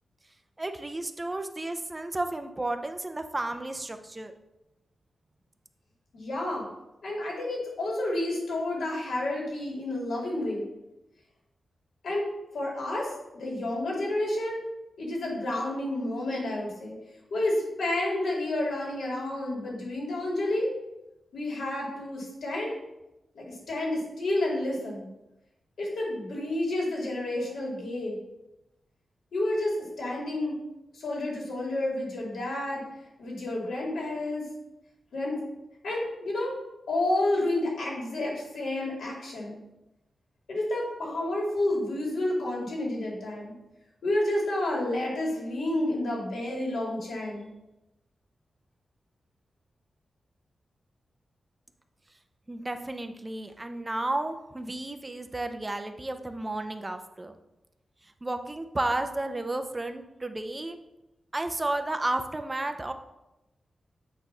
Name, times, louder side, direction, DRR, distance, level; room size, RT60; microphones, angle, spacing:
voice 1, 0.6-4.3 52.5-57.4 58.2-60.8 61.3-62.9, right 2 dB, 20° right, 7 dB, 0.5 m, -32 dB
voice 2, 6.1-6.6 7.0-10.6 12.0-12.3 12.5-14.6 15.0-16.9 17.3-20.7 21.3-22.7 23.3-25.0 25.8-28.2 29.3-30.5 30.9-32.8 33.2-34.4 35.1-35.4 35.8-36.5 36.9-39.6 40.5-43.5 44.0-47.5, left 1 dB, 85° left, -3 dB, 2.4 m, -30 dB
8.4 x 3.1 x 5.4 m, 0.95 s
wide cardioid pair, 120°, 0 cm